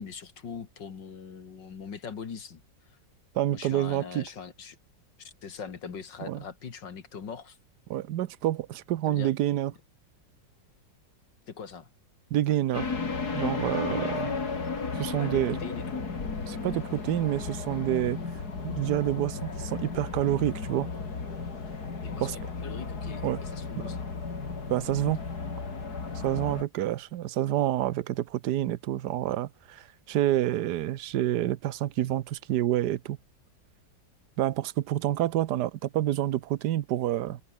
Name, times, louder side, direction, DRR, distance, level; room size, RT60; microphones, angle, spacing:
voice 1, 0.0-2.6 3.5-4.8 5.2-7.6 9.1-9.3 11.5-11.9 15.2-16.1 22.0-24.1, left 6 dB, 75° left, 2.7 m, -42 dB
voice 2, 3.3-4.2 6.3-6.4 7.9-9.7 12.3-12.9 13.3-14.3 14.9-15.6 16.5-18.2 18.6-20.9 22.2-22.4 23.2-23.4 23.8-23.9 24.7-25.2 26.1-33.2 34.4-37.4, right 13 dB, 70° right, 1.3 m, -28 dB
sound 1, 12.7-26.6, left 4 dB, 55° left, 3.4 m, -34 dB
omnidirectional pair, 2.0 m